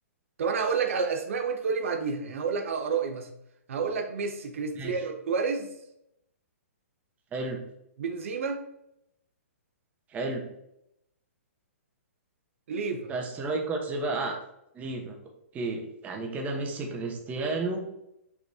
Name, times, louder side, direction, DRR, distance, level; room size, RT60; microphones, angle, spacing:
voice 1, 0.4-3.3 3.7-5.7 8.0-8.6 12.7-13.1, right 5 dB, 65° right, 4 dB, 0.9 m, -29 dB
voice 2, 10.1-10.5 13.1-14.4 14.7-15.2 15.5-17.9, right 3 dB, 20° right, 3 dB, 1.2 m, -32 dB
6.0 x 5.9 x 2.8 m, 0.82 s
hypercardioid pair, 130°, 8 cm